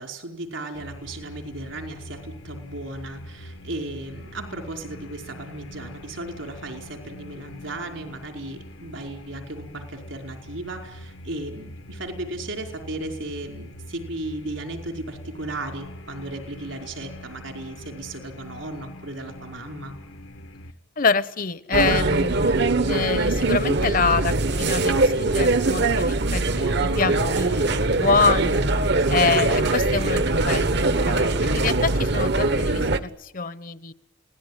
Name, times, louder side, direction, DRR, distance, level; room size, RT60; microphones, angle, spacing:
voice 1, 0.0-20.0, right 2 dB, 75° right, 3 dB, 5.0 m, -35 dB
sound 1, 0.7-20.7, equal, 90° left, 2.0 m, -43 dB
voice 2, 21.0-28.6 29.1-33.9, left 4 dB, 45° left, 14 dB, 1.0 m, -26 dB
sound 2, 21.7-33.0, right 2 dB, 60° right, 1.4 m, -22 dB
29.0 x 18.5 x 9.8 m, 0.84 s
head